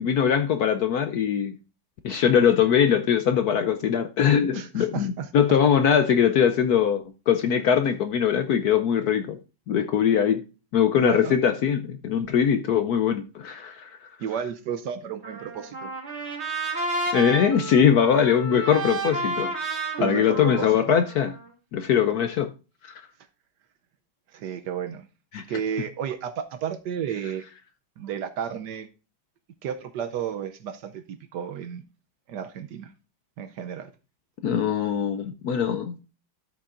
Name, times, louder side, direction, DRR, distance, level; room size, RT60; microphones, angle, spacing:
voice 1, 0.0-1.6 2.0-9.4 9.7-10.4 10.7-13.9 17.1-19.5 20.0-21.3 21.7-22.5 25.3-25.4 34.4-36.0, left 8 dB, 70° left, 0.9 m, -21 dB
voice 2, 4.5-5.3 10.9-11.3 14.2-15.9 20.0-21.0 24.3-25.1 25.5-27.5 28.0-28.9 29.6-31.8 32.3-32.9 33.4-33.9, right 8 dB, 70° right, 1.1 m, -32 dB
Trumpet, 15.2-21.5, right 3 dB, 35° right, 2.1 m, -31 dB
12.5 x 6.7 x 2.5 m
omnidirectional pair, 2.1 m